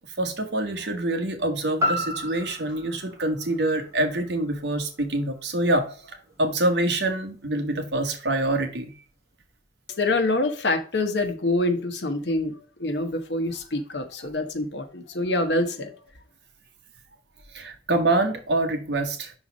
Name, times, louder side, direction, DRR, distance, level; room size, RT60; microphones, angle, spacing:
voice 1, 0.2-8.9 14.2-14.3 17.5-19.3, right 1 dB, 75° right, 1.2 m, -26 dB
sound 1, 1.8-5.9 6.3-6.4, left 1 dB, 15° right, 2.0 m, -32 dB
voice 2, 9.9-12.5 12.8-16.0, left 2 dB, 70° left, 1.1 m, -26 dB
5.8 x 4.1 x 5.1 m
head